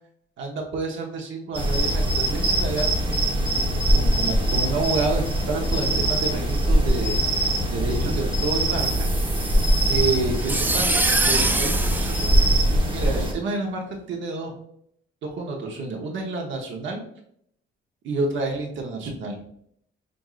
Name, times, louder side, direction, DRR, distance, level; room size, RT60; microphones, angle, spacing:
voice 1, 0.4-9.1 9.9-11.0 11.2-12.3 12.8-14.5 15.2-17.0 18.0-19.4, right 3 dB, 75° right, 1 dB, 0.9 m, -29 dB
sound 1, 1.5-13.3, right 1 dB, 25° right, 1.0 m, -22 dB
sound 2, 8.8-13.1, right 2 dB, 10° right, 0.3 m, -26 dB
6.0 x 2.6 x 2.4 m, 0.68 s
cardioid pair, 90°, 20 cm